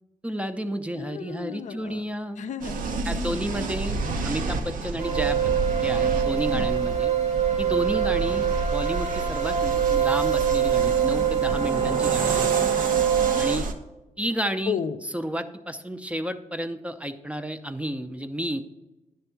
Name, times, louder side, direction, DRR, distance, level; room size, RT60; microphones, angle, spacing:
voice 1, 0.2-2.5 3.1-7.1 7.6-12.8 13.4-13.7 14.2-14.8 15.1-18.6, equal, 10° right, 9 dB, 0.4 m, -31 dB
voice 2, 0.9-2.0 2.4-3.5 6.5-6.7 14.7-15.0, left 7 dB, 65° left, 9 dB, 0.5 m, -33 dB
sound 1, 2.6-13.7, right 3 dB, 90° right, 0.7 m, -30 dB
sound 2, 5.0-13.5, right 9 dB, 60° right, 0.9 m, -24 dB
9.9 x 3.4 x 5.7 m, 1.0 s
cardioid pair, 100°, 14 cm